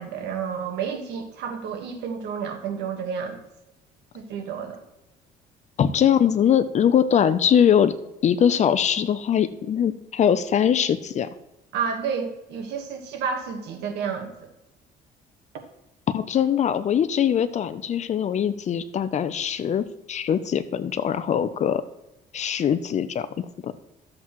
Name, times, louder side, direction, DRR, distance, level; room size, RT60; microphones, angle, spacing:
voice 1, 0.0-3.4 4.1-4.8 11.7-14.5, right 6 dB, 80° right, 4 dB, 1.5 m, -30 dB
voice 2, 5.8-7.9 8.2-11.3 16.1-21.8 22.3-23.7, left 8 dB, 45° left, 13 dB, 0.6 m, -22 dB
13.5 x 7.4 x 3.1 m, 0.94 s
cardioid pair, 110°, 17 cm